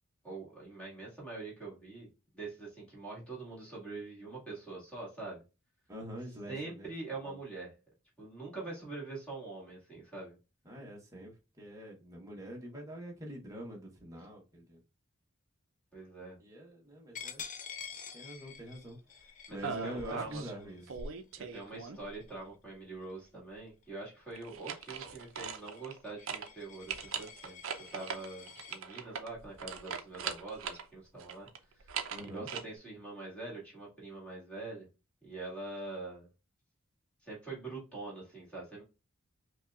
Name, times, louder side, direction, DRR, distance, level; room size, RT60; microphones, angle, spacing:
voice 1, 0.2-2.1 2.3-5.4 6.5-7.7 8.2-10.4 15.9-16.4 19.5-20.8 21.4-27.6 27.9-31.5 31.8-32.0 32.2-34.9 35.2-36.3 37.2-38.8, right 3 dB, 5° left, 1.7 m, -44 dB
voice 2, 5.9-6.9 7.2-7.4 10.6-14.8 16.4-17.4 18.1-20.8 32.1-32.5, equal, 15° right, 0.9 m, -45 dB
Coin (dropping), 17.1-22.5 23.0-23.3 23.7-28.8, left 7 dB, 35° left, 0.4 m, -49 dB
sound 1, 19.6-20.5 20.9-22.2 24.4-26.0 26.3-26.5 26.9-30.9 31.2-32.6, right 6 dB, 60° right, 0.5 m, -40 dB
5.4 x 2.3 x 2.3 m
head